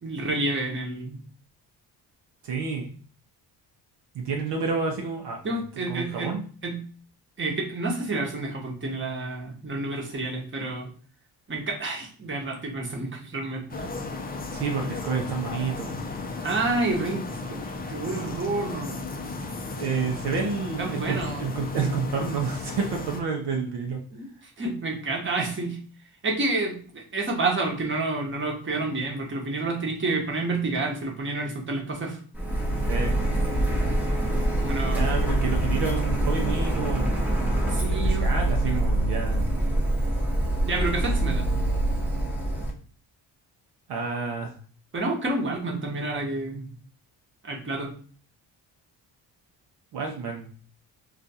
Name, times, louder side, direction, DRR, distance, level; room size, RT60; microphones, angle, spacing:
voice 1, 0.0-1.2 5.4-6.8 7.4-10.9 11.5-13.8 16.3-19.0 20.8-21.4 24.1-24.3 24.6-25.8 26.2-32.2 34.6-35.0 37.4-38.3 38.6-38.8 40.6-41.5 44.9-46.7 47.4-47.9, right 2 dB, 25° right, -1 dB, 1.0 m, -29 dB
voice 2, 2.4-2.9 4.1-5.6 5.9-6.4 14.5-16.0 19.8-24.0 32.9-33.1 34.9-37.4 38.0-39.6 43.9-44.5 49.9-50.5, right 5 dB, 65° right, 1 dB, 0.7 m, -29 dB
sound 1, 13.7-23.2, left 3 dB, 20° left, 0.5 m, -35 dB
Printer, 32.3-42.7, right 1 dB, 5° right, 0.9 m, -25 dB
2.4 x 2.4 x 4.0 m, 0.43 s
cardioid pair, 75°, 44 cm